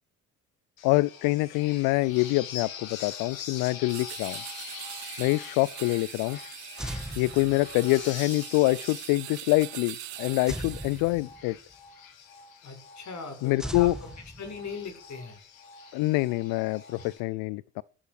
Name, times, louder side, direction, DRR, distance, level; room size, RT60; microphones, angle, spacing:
sound 1, 0.8-17.2, left 7 dB, 80° left, 2.7 m, -44 dB
voice 1, 0.8-4.4 5.2-6.4 7.2-11.6 13.4-13.9 15.9-17.8, left 21 dB, 60° left, 0.6 m, -25 dB
sound 2, 3.9-11.2, right 16 dB, 75° right, 1.3 m, -42 dB
sound 3, 6.8-8.1 10.5-11.7 13.6-14.9, right 1 dB, ahead, 1.8 m, -39 dB
voice 2, 12.6-13.9 14.4-15.4, left 5 dB, 45° left, 6.5 m, -39 dB
17.5 x 11.0 x 4.8 m
figure-of-eight pair, 50°, 40 cm